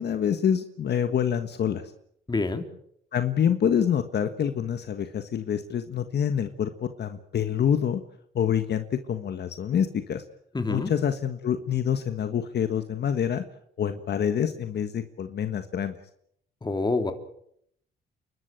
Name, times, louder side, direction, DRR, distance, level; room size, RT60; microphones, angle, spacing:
voice 1, 0.0-1.8 3.1-8.0 8.3-10.2 10.7-13.4 13.8-15.9, left 8 dB, 55° left, 8 dB, 1.6 m, -26 dB
voice 2, 2.3-2.6 10.5-10.9 16.6-17.1, left 3 dB, 20° left, 7 dB, 3.4 m, -26 dB
30.0 x 13.0 x 9.0 m, 0.71 s
cardioid pair, 90°, 20 cm